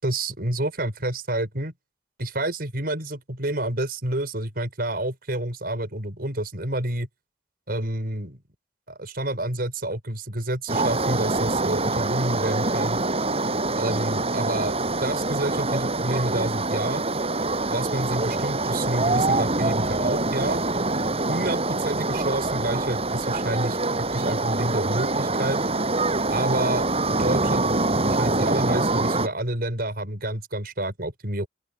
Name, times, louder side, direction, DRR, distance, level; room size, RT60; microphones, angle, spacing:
voice 1, 0.0-1.7 2.2-7.1 7.7-8.4 8.9-13.0 13.8-17.0 17.7-20.6 21.3-25.6 26.3-26.9 27.1-31.5, right 1 dB, 60° right, 6.1 m, -29 dB
sound 1, 10.7-29.3, right 2 dB, 35° right, 7.9 m, -25 dB
open air
head